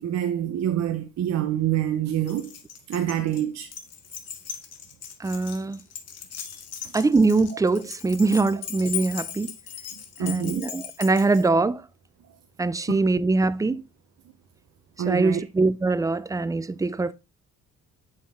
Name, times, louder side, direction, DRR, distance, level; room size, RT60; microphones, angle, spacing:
voice 1, 0.0-2.5 2.9-3.7 10.2-10.6 15.0-15.4, right 11 dB, 60° right, 0.7 m, -26 dB
Keys jangling, 2.3-11.5, left 9 dB, 55° left, 1.2 m, -38 dB
voice 2, 5.2-5.8 6.9-9.5 10.2-11.8 12.6-13.8 15.1-17.1, right 3 dB, 10° right, 0.4 m, -23 dB
7.2 x 4.4 x 3.6 m
cardioid pair, 90°, 30 cm